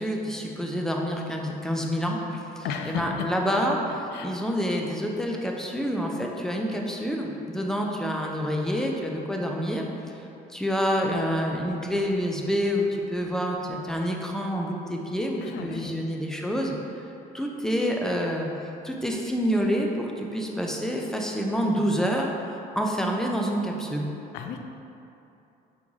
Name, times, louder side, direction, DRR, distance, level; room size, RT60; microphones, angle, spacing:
voice 1, 0.0-9.9 10.5-16.7 17.3-24.1, equal, 5° left, 0 dB, 0.4 m, -27 dB
voice 2, 2.6-3.0 4.1-4.3 15.4-16.0 24.3-24.6, left 7 dB, 80° left, 5 dB, 0.4 m, -34 dB
3.9 x 3.5 x 3.1 m, 2.8 s
cardioid pair, 110°, 17 cm